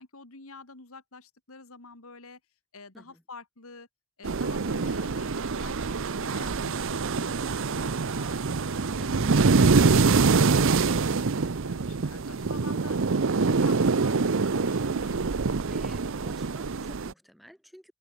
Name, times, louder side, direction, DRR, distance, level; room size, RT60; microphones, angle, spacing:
voice 1, 0.0-2.4 2.7-3.9 4.2-9.3 9.7-13.0 13.2-15.3, left 3 dB, 70° left, 2.7 m, -48 dB
sound 1, 4.2-17.1, right 4 dB, 60° right, 0.7 m, -25 dB
voice 2, 15.7-17.9, equal, ahead, 4.9 m, -52 dB
head